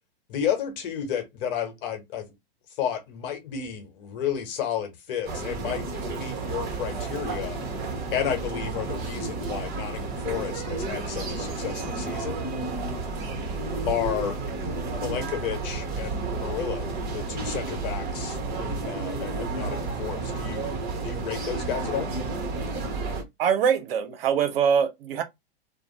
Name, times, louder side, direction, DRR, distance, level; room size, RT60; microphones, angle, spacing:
voice 1, 0.3-2.3 2.8-7.6 8.1-12.4 13.9-20.7 21.0-22.1, left 9 dB, 55° left, 1.1 m, -32 dB
sound 1, 5.2-23.2, right 3 dB, 30° right, 1.1 m, -31 dB
voice 2, 23.4-25.2, right 7 dB, 65° right, 0.8 m, -23 dB
2.6 x 2.2 x 2.9 m
hypercardioid pair, 105°, 32 cm